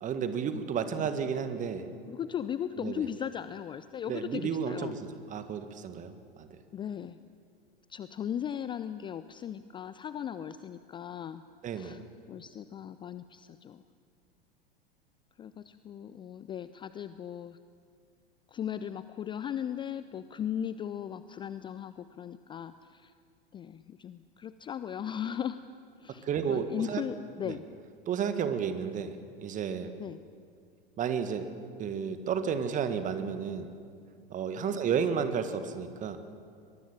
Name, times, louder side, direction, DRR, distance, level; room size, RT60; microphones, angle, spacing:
voice 1, 0.0-1.9 2.8-3.0 4.1-6.5 11.6-12.0 26.2-27.0 27.4-27.5 28.1-29.1 29.4-29.9 31.0-31.5 31.8-33.7 34.3-36.2, right 7 dB, 25° right, 9 dB, 1.8 m, -32 dB
voice 2, 0.9-1.3 2.0-5.0 6.7-7.2 7.9-11.4 11.7-12.0 12.3-13.8 15.4-17.6 18.5-23.1 23.5-25.6 26.0-27.7 30.0-30.2 34.7-34.8, left 9 dB, 15° left, 14 dB, 0.5 m, -37 dB
23.0 x 22.0 x 7.4 m, 2.3 s
figure-of-eight pair, 90°, 29 cm